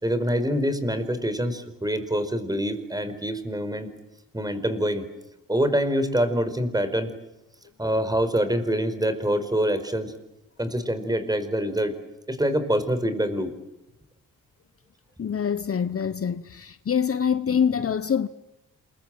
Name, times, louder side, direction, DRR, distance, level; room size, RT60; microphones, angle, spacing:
voice 1, 0.0-3.9 4.3-5.1 5.5-7.1 7.8-10.1 10.6-12.0 12.3-13.5, equal, 10° right, 4.8 m, -25 dB
voice 2, 15.2-18.3, left 7 dB, 45° left, 1.1 m, -25 dB
28.0 x 23.0 x 9.0 m
cardioid pair, 85°, 32 cm